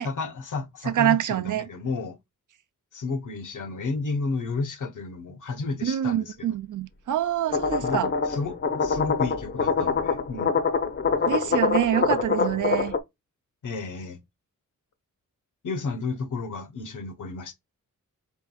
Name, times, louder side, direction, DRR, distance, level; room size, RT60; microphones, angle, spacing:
voice 1, 0.0-2.2 2.9-6.5 7.8-8.0 8.3-10.6 13.6-14.2 15.6-17.5, left 4 dB, 70° left, 0.9 m, -32 dB
voice 2, 0.9-1.7 5.8-8.1 11.2-12.9, right 11 dB, 70° right, 0.5 m, -26 dB
sound 1, 7.5-13.0, left 5 dB, 40° left, 0.6 m, -25 dB
4.5 x 3.6 x 2.2 m
wide cardioid pair, 145°, 32 cm